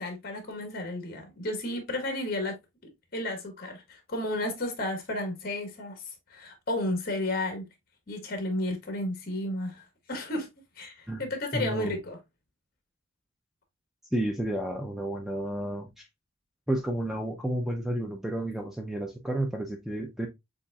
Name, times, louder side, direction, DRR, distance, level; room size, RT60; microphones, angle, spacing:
voice 1, 0.0-2.6 3.1-6.0 6.3-7.7 8.1-9.8 10.1-10.5 10.8-12.2, left 1 dB, 45° left, 1.3 m, -32 dB
voice 2, 11.5-12.0 14.1-16.1 16.7-20.3, right 1 dB, ahead, 0.5 m, -31 dB
6.9 x 2.6 x 2.3 m
head